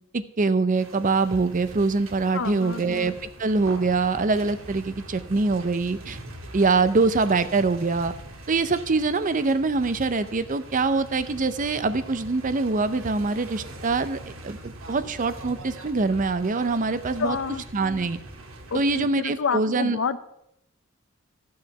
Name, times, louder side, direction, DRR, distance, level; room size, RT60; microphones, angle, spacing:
voice 1, 0.1-3.1 3.4-6.2 6.5-8.1 8.5-17.4 17.7-18.2 18.7-20.0, right 3 dB, 40° right, 13 dB, 0.6 m, -24 dB
sound 1, 0.7-19.1, right 1 dB, 85° right, 1.6 m, -42 dB
voice 2, 2.3-3.2 17.2-17.6 18.7-20.2, left 5 dB, 65° left, 14 dB, 0.6 m, -29 dB
13.0 x 6.3 x 5.8 m, 0.78 s
head